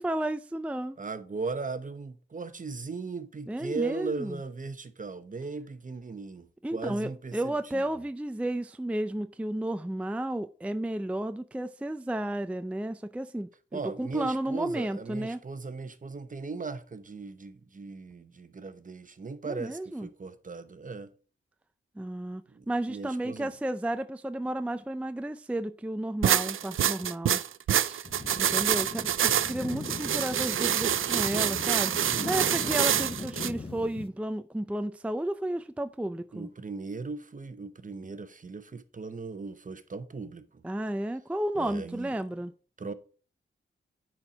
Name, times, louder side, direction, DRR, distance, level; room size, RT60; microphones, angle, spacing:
voice 1, 0.0-1.0 3.5-4.4 6.6-15.4 19.4-20.1 22.0-22.4 22.7-27.4 27.7-28.0 28.4-36.5 40.6-42.5, right 1 dB, 5° right, 0.4 m, -32 dB
voice 2, 1.0-7.9 13.7-21.1 22.5-23.5 32.0-32.6 36.3-40.6 41.6-42.2 42.8-42.9, right 4 dB, 40° right, 0.9 m, -38 dB
sound 1, 26.2-33.5, right 10 dB, 85° right, 0.4 m, -27 dB
sound 2, 28.0-34.1, left 3 dB, 25° left, 0.8 m, -40 dB
9.7 x 4.5 x 4.9 m
wide cardioid pair, 80°, 20 cm